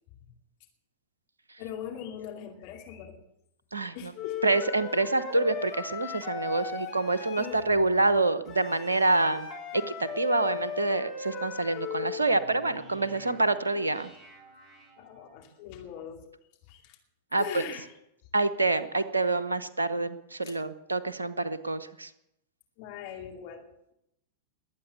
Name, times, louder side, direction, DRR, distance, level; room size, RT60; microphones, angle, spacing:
voice 1, 1.6-3.2 3.9-4.4 7.4-7.8 15.0-16.3 16.7-17.0 17.4-17.9 20.4-20.6 22.8-23.6, left 8 dB, 50° left, 1 dB, 2.6 m, -40 dB
voice 2, 3.7-4.1 4.4-9.5 9.7-14.1 17.3-17.6 18.3-22.1, right 2 dB, 75° right, 13 dB, 1.0 m, -27 dB
Wind instrument woodwind instrument, 4.2-7.7 8.5-12.2, left 7 dB, 30° left, 4.3 m, -37 dB
sound 1, 12.3-15.6, equal, 15° right, 4.3 m, -51 dB
21.0 x 8.9 x 6.9 m, 0.81 s
figure-of-eight pair, 90°, 0 cm